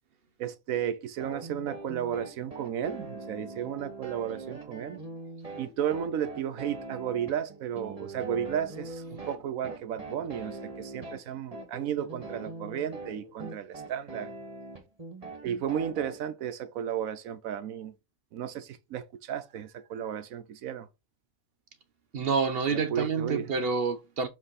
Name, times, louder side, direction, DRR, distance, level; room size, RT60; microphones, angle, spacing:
voice 1, 0.4-5.0 5.6-14.3 15.4-17.9 18.3-20.9 22.7-23.5, right 9 dB, 85° right, 1.2 m, -33 dB
sound 1, 1.2-16.2, right 2 dB, 25° right, 1.8 m, -42 dB
voice 2, 22.1-24.3, right 5 dB, 55° right, 0.8 m, -28 dB
7.6 x 3.4 x 4.0 m
omnidirectional pair, 1.4 m